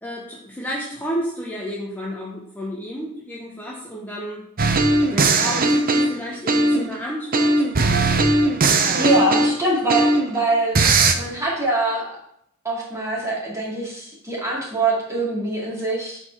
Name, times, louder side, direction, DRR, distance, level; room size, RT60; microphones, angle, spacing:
voice 1, 0.0-4.4 5.1-8.3 9.0-9.3, equal, 10° left, -4 dB, 1.0 m, -31 dB
sound 1, 4.6-6.9 7.3-10.4 10.7-11.1, right 2 dB, 40° right, 0.7 m, -18 dB
voice 2, 8.9-10.8 11.1-12.2 12.6-16.2, right 2 dB, 15° right, -5 dB, 2.5 m, -23 dB
8.6 x 4.6 x 4.6 m, 0.72 s
head